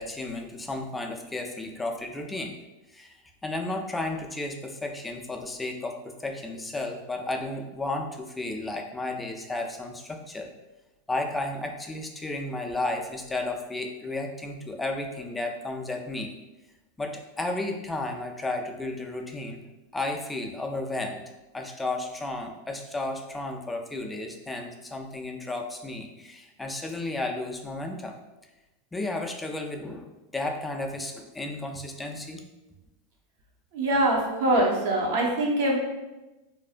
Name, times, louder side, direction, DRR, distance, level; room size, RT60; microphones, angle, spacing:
voice 1, 0.0-2.5 2.9-3.1 3.4-10.5 11.1-16.3 17.0-19.6 19.9-21.2 21.5-28.1 28.9-32.4, left 2 dB, 10° left, 3 dB, 0.3 m, -33 dB
voice 2, 33.7-35.8, right 1 dB, 65° right, -1 dB, 0.6 m, -23 dB
2.5 x 2.0 x 2.4 m, 1.1 s
hypercardioid pair, 115°, 0 cm